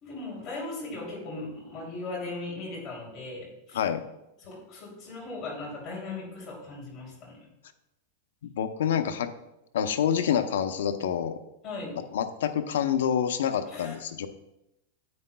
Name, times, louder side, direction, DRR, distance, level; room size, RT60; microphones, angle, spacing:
voice 1, 0.0-3.8 4.4-7.5 11.6-12.0 13.7-13.9, left 2 dB, 20° left, -4 dB, 2.9 m, -38 dB
voice 2, 8.5-9.3 9.7-11.4 12.1-14.3, left 8 dB, 90° left, 8 dB, 0.7 m, -27 dB
9.5 x 8.6 x 2.3 m, 0.89 s
supercardioid pair, 175°, 0 cm